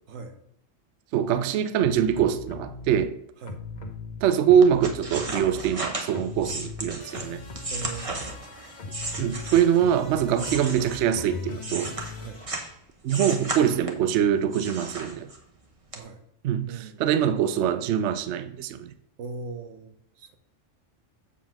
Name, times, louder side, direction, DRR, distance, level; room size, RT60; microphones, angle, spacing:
voice 1, 0.1-0.4 3.4-3.6 7.7-8.7 10.4-10.6 12.2-12.4 15.9-16.2 16.7-17.0 19.2-20.4, right 4 dB, 90° right, 1.2 m, -40 dB
voice 2, 1.1-3.2 4.2-7.4 9.2-11.9 13.0-15.3 16.4-18.9, right 9 dB, 70° right, 0.8 m, -23 dB
sound 1, 1.8-2.9 3.4-5.8 6.1-12.5, left 3 dB, 40° left, 0.8 m, -39 dB
sound 2, 4.6-9.9 10.3-12.7 13.1-14.1 14.5-15.6 15.9-16.0, right 2 dB, 30° right, 1.0 m, -34 dB
7.1 x 3.7 x 5.9 m
omnidirectional pair, 1.3 m